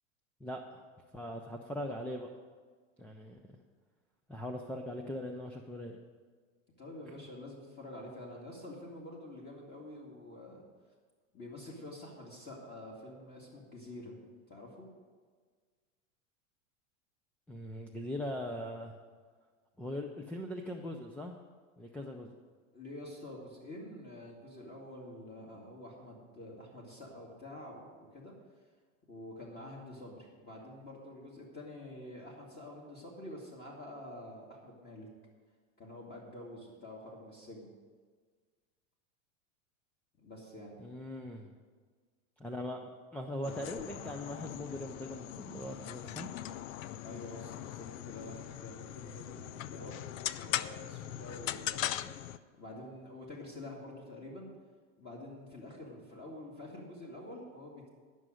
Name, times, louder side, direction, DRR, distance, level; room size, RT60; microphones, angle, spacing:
voice 1, 0.4-0.8 1.1-2.3 3.0-3.6 4.3-6.0 7.1-7.2 17.5-19.0 19.8-21.4 21.8-22.3 40.8-41.5 42.4-42.8 43.1-46.3, left 1 dB, 5° left, 2 dB, 0.4 m, -40 dB
voice 2, 6.8-10.6 11.3-14.1 14.5-14.9 22.7-28.3 29.1-35.1 35.8-37.7 40.2-40.8 47.0-49.9 50.3-52.2 52.5-54.5 55.0-57.9, left 1 dB, 25° left, -3 dB, 2.3 m, -47 dB
sound 1, 43.4-52.4, left 12 dB, 75° left, 0.6 m, -40 dB
11.0 x 6.3 x 9.1 m, 1.5 s
supercardioid pair, 130°, 40 cm